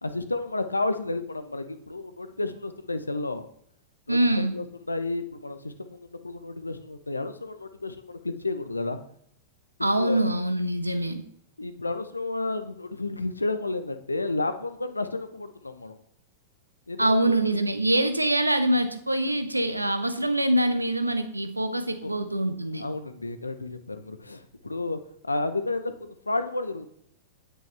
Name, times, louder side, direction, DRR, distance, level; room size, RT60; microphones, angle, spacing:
voice 1, 0.0-3.5 4.1-4.2 4.5-9.0 10.0-10.3 11.6-16.0 16.9-17.1 22.0-22.1 22.7-26.9, left 2 dB, 85° left, 10 dB, 0.9 m, -31 dB
voice 2, 4.1-4.5 9.8-11.2 17.0-22.9, right 1 dB, 90° right, 9 dB, 0.9 m, -24 dB
9.2 x 8.9 x 3.4 m, 0.66 s
figure-of-eight pair, 95°, 0 cm